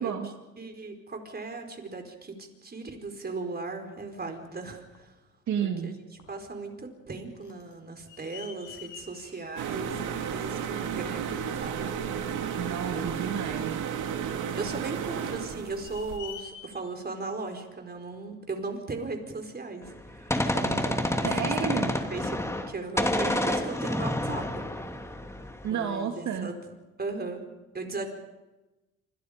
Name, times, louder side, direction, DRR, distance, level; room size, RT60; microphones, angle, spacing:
voice 1, 0.0-5.1 5.6-5.9 6.3-11.9 12.9-13.1 14.2-21.3 21.6-24.6 25.7-26.6 27.0-27.4 27.7-28.1, right 3 dB, 30° right, 5 dB, 4.7 m, -37 dB
sound 1, 4.0-5.2 5.8-5.9 6.2-6.7 7.0-18.5 19.2-19.3, left 8 dB, 80° left, 7.1 m, -50 dB
voice 2, 5.5-6.0 12.6-13.8 21.2-21.9 25.6-26.5, right 7 dB, 70° right, 3 dB, 2.5 m, -31 dB
sound 2, 9.6-16.2, right 8 dB, 85° right, 2.5 m, -33 dB
Gunshot gunfire, 19.9-22.7 23.0-25.7, left 1 dB, 10° left, 2.6 m, -29 dB
27.5 x 26.5 x 5.2 m, 1.1 s
cardioid pair, 90°, 30 cm